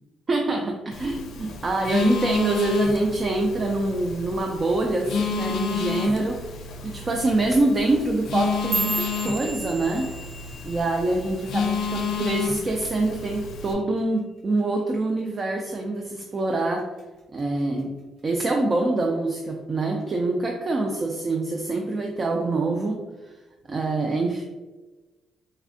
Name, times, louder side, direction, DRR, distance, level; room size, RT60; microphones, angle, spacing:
voice 1, 0.3-10.1 10.6-16.9 17.3-17.9 18.2-23.3 23.7-24.4, right 2 dB, 40° right, 1 dB, 0.4 m, -25 dB
Telephone, 0.9-13.7, left 5 dB, 75° left, 0.4 m, -30 dB
sound 1, 8.3-12.7 13.0-13.4 13.8-14.2 14.6-14.8 15.4-15.8 16.2-17.0 17.4-17.8 18.6-18.7, right 2 dB, 90° right, 1.2 m, -34 dB
4.2 x 2.4 x 2.5 m, 1.2 s
cardioid pair, 90°, 0 cm